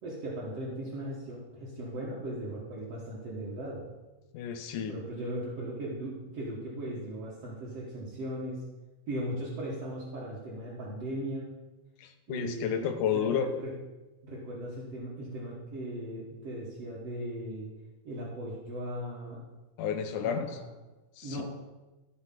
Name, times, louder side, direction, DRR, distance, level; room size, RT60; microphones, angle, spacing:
voice 1, 0.0-3.9 4.9-8.6 9.1-11.5 12.3-13.7 14.2-17.7 18.0-19.4 20.2-20.6 21.2-21.4, right 1 dB, 55° right, -7 dB, 2.8 m, -38 dB
voice 2, 4.3-4.9 12.3-13.5 19.8-20.6 21.2-21.4, left 8 dB, 85° left, 7 dB, 2.5 m, -31 dB
13.5 x 6.2 x 5.8 m, 1.1 s
omnidirectional pair, 3.6 m